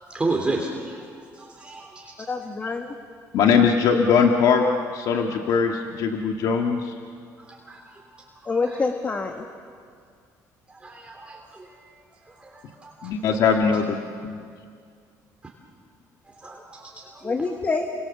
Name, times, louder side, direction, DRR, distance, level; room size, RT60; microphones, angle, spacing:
voice 1, 0.0-2.1 7.5-7.8 8.2-8.8 10.7-12.0 12.3-13.2 16.3-17.3, right 2 dB, 15° right, 0 dB, 3.3 m, -33 dB
voice 2, 2.3-2.9 8.4-9.4 17.2-17.9, left 4 dB, 25° left, 4 dB, 1.6 m, -26 dB
voice 3, 3.3-4.6 4.9-6.9 13.0-14.0 14.2-14.4, left 6 dB, 70° left, 2 dB, 1.9 m, -20 dB
30.0 x 25.5 x 7.2 m, 2.2 s
cardioid pair, 125°, 7 cm